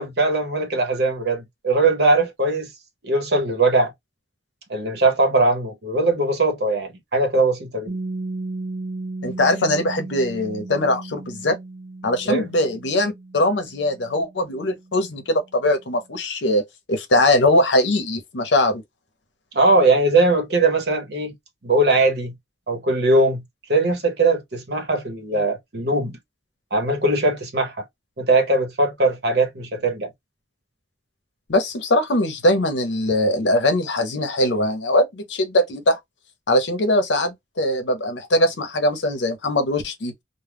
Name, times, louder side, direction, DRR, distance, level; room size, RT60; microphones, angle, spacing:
voice 1, 0.0-2.7 3.0-3.9 4.7-8.0 12.3-12.5 19.5-21.3 21.6-22.3 22.7-23.4 23.7-26.2 26.7-27.8 28.2-30.1, right 2 dB, 60° right, 0.9 m, -20 dB
Piano, 7.9-15.2, right 2 dB, 90° right, 0.7 m, -35 dB
voice 2, 9.2-11.6 12.0-16.6 16.9-18.8 31.5-36.0 36.5-40.1, left 1 dB, 80° left, 0.7 m, -21 dB
2.2 x 2.1 x 3.3 m
head